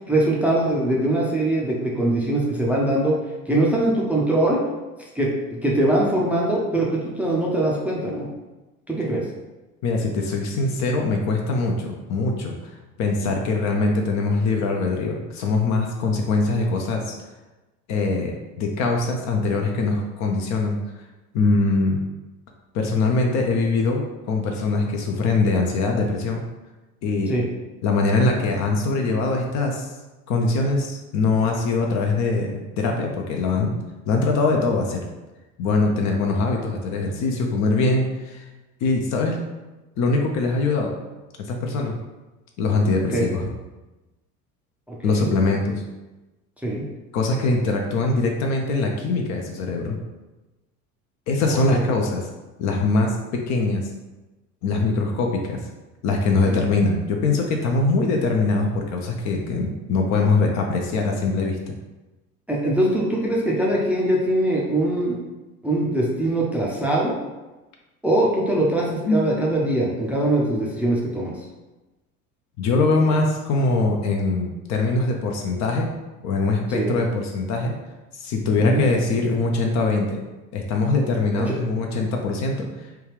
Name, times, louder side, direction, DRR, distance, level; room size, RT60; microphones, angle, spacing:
voice 1, 0.1-3.1 3.5-4.6 5.1-5.3 5.6-8.3 8.9-9.2 27.3-27.4 43.1-43.2 44.9-45.3 46.6-46.8 51.5-51.8 56.5-56.6 62.5-65.2 65.6-67.2 68.0-71.3 76.7-76.9 78.6-78.9 81.3-81.6, right 1 dB, 5° right, -4 dB, 0.5 m, -22 dB
voice 2, 9.8-12.5 13.0-17.2 17.9-20.8 21.3-22.0 22.7-26.4 27.0-27.3 27.8-29.9 30.3-33.7 34.1-35.0 35.6-38.5 38.8-39.4 40.0-40.9 41.4-41.9 42.6-43.5 45.0-45.8 47.1-50.0 51.3-52.2 52.6-53.9 54.6-55.6 56.0-61.6 69.1-69.3 72.6-75.9 76.2-77.7 78.1-80.2 80.5-82.7, left 3 dB, 40° left, 1 dB, 0.5 m, -22 dB
3.4 x 2.3 x 3.1 m, 1.1 s
figure-of-eight pair, 65°, 44 cm